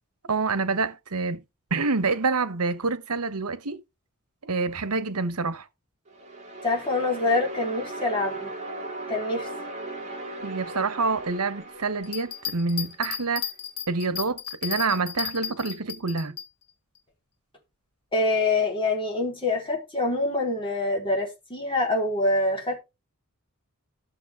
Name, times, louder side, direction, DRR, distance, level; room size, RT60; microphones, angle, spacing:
voice 1, 0.2-1.4 1.7-3.8 4.4-5.7 10.4-13.5 13.9-16.4, right 4 dB, 80° right, 1.1 m, -27 dB
sound 1, 6.1-13.1, right 2 dB, 30° right, 2.7 m, -38 dB
voice 2, 6.6-8.5 9.1-9.5 18.1-22.8, left 2 dB, 25° left, 3.7 m, -25 dB
Bell, 12.0-16.5 16.9-17.0, left 9 dB, 85° left, 1.8 m, -34 dB
13.5 x 6.7 x 3.6 m
head